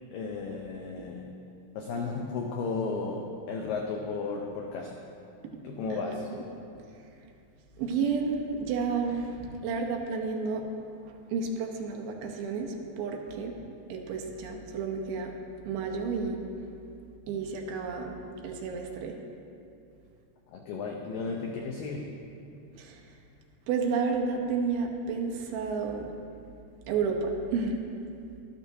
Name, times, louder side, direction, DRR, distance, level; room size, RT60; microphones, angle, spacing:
voice 1, 0.1-1.4 1.8-5.0 5.6-6.3 20.5-22.2, left 4 dB, 85° left, 1 dB, 2.0 m, -34 dB
voice 2, 5.9-6.4 6.9-7.2 7.8-10.7 11.0-13.6 13.9-15.3 15.6-16.7 17.3-18.2 18.4-19.2 22.8-23.2 23.7-26.1 26.9-27.8, right 5 dB, 75° right, 2 dB, 2.4 m, -31 dB
12.0 x 11.5 x 2.7 m, 2.5 s
omnidirectional pair, 4.8 m